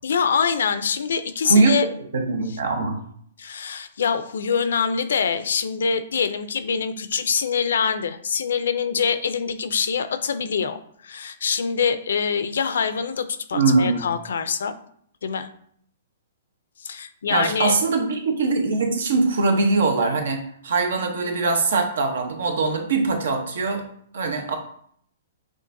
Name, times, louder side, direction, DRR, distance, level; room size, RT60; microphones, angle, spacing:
voice 1, 0.0-1.9 3.4-14.7 15.2-15.5 16.8-17.9, left 6 dB, 80° left, 11 dB, 0.4 m, -24 dB
voice 2, 1.5-1.8 2.1-3.0 13.5-14.1 17.3-23.8 24.1-24.6, right 3 dB, 75° right, 4 dB, 0.9 m, -22 dB
6.4 x 2.5 x 2.6 m, 0.65 s
hypercardioid pair, 160°, 0 cm